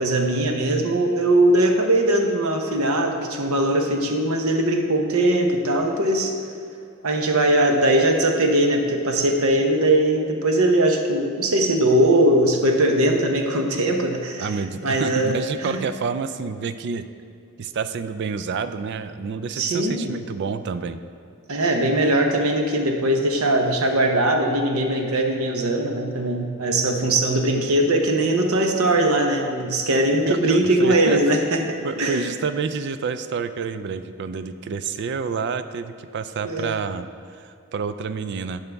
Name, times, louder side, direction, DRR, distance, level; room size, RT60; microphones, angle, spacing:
voice 1, 0.0-6.3 7.0-14.5 14.8-15.8 19.5-20.1 21.5-31.6 32.0-32.3 36.4-36.7, right 1 dB, 75° right, 3 dB, 0.9 m, -20 dB
voice 2, 14.4-17.1 17.6-21.0 30.3-31.2 31.8-37.1 37.3-38.6, right 5 dB, 50° right, 11 dB, 0.3 m, -28 dB
11.0 x 5.6 x 3.4 m, 2.6 s
head